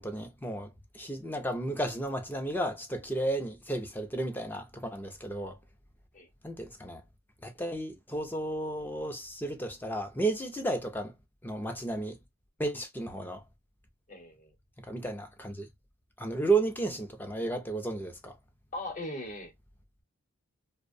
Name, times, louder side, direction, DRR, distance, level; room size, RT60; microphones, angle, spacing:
voice 1, 0.0-5.6 6.4-7.0 7.4-11.1 11.4-12.2 12.6-13.4 14.8-15.7 16.2-18.4, right 2 dB, 10° left, 0.4 m, -33 dB
voice 2, 14.1-14.5 18.7-19.5, left 1 dB, 35° left, 0.8 m, -39 dB
2.5 x 2.0 x 2.5 m
head